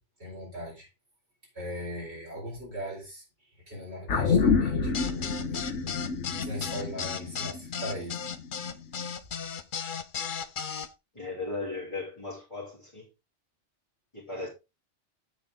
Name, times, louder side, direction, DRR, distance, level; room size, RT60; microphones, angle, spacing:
voice 1, 0.2-0.9 1.5-5.3 6.4-8.2, equal, 60° right, 4.5 m, -39 dB
sound 1, 4.1-8.7 9.0-9.1, left 5 dB, 75° left, 1.5 m, -28 dB
sound 2, 4.9-10.9, left 7 dB, 50° left, 0.9 m, -35 dB
voice 2, 11.1-13.1 14.1-14.5, left 3 dB, 25° left, 2.8 m, -36 dB
8.2 x 7.6 x 3.7 m
omnidirectional pair, 1.2 m